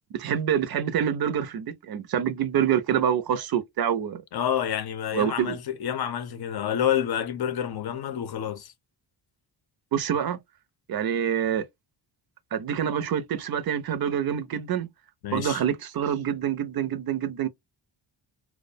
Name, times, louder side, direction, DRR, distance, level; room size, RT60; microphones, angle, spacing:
voice 1, 0.2-4.2 5.1-5.6 9.9-10.4 10.9-11.6 12.5-14.9 15.3-17.5, right 9 dB, 55° right, 0.5 m, -26 dB
voice 2, 4.3-8.7 15.2-15.6, left 9 dB, 55° left, 0.5 m, -28 dB
2.2 x 2.1 x 2.6 m
cardioid pair, 90°, 45 cm